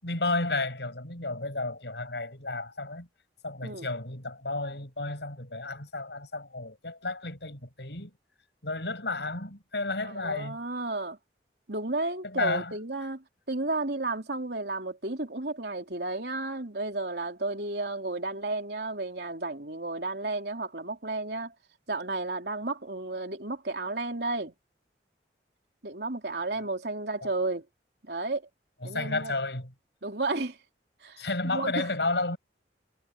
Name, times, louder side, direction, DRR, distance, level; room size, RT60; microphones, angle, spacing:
voice 1, 0.0-3.1 3.4-8.1 8.6-10.6 12.2-12.7 27.2-27.3 28.8-29.7 31.2-32.4, left 2 dB, 75° left, 7.2 m, -32 dB
voice 2, 10.0-11.2 11.7-21.5 21.9-24.5 25.8-27.6 28.0-28.4 28.8-29.3 30.0-30.6 31.0-31.9, right 2 dB, 65° right, 3.7 m, -32 dB
head